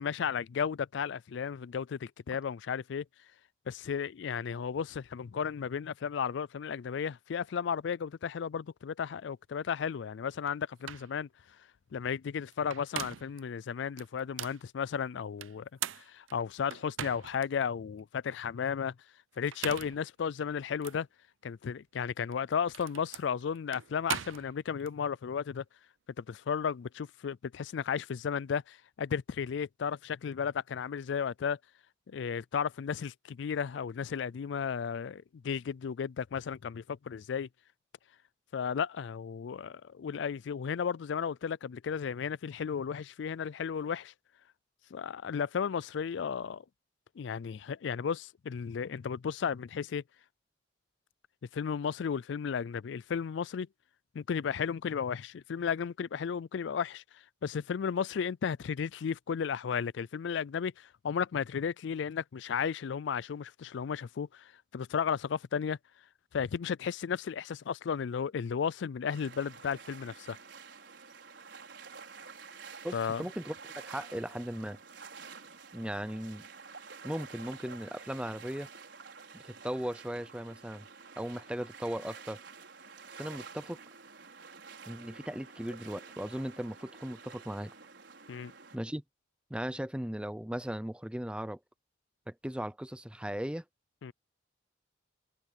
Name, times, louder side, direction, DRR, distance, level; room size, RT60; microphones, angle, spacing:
voice 1, 0.0-3.1 3.7-11.3 11.9-15.7 15.9-18.9 19.4-21.1 21.4-25.6 26.2-31.6 32.1-37.5 38.5-44.1 44.9-46.6 47.2-50.0 51.5-53.7 54.1-57.0 57.4-65.8 66.3-70.4 72.9-73.2 88.3-88.5 94.0-94.1, left 7 dB, 65° left, 0.4 m, -34 dB
sound 1, 10.5-10.6 10.9-11.1 12.5-13.4 14.0-14.6 15.4-17.5 18.0-18.1 19.3-20.0 20.8-21.0 22.2-24.9, right 10 dB, 85° right, 0.6 m, -40 dB
sound 2, 69.1-88.8, right 5 dB, 65° right, 5.6 m, -50 dB
voice 2, 72.8-74.8 75.7-76.4 77.0-78.7 79.3-80.9 81.2-82.4 83.2-83.8 84.9-87.7 88.7-89.0 89.5-91.6 92.3-93.6, equal, 5° right, 0.6 m, -37 dB
head